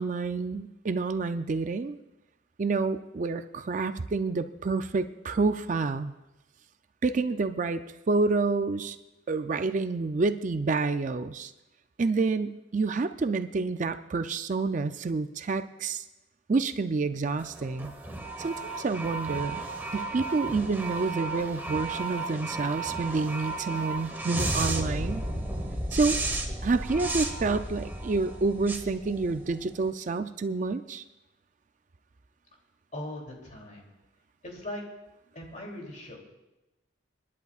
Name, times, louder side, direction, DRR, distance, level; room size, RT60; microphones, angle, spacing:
voice 1, 0.0-2.0 2.6-6.1 7.0-7.8 8.1-9.0 9.3-11.5 12.0-16.0 16.5-17.9 18.4-19.6 19.9-25.2 25.9-26.2 26.6-31.0, right 3 dB, 40° right, 9 dB, 0.4 m, -28 dB
sound 1, 17.4-29.8, right 2 dB, 10° right, 1.2 m, -34 dB
voice 2, 32.9-33.9 34.4-34.8 35.3-36.2, left 1 dB, 40° left, 0 dB, 2.9 m, -39 dB
29.5 x 11.0 x 2.4 m, 1.0 s
head